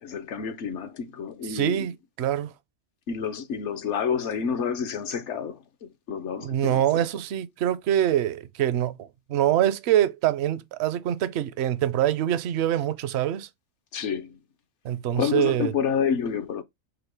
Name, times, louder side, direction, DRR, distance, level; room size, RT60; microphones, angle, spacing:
voice 1, 0.0-1.9 3.1-6.8 13.9-14.4 15.2-16.6, left 7 dB, 65° left, 0.9 m, -29 dB
voice 2, 1.4-2.5 6.4-13.5 14.8-15.7, right 11 dB, 65° right, 0.7 m, -25 dB
5.0 x 2.1 x 4.7 m
omnidirectional pair, 1.4 m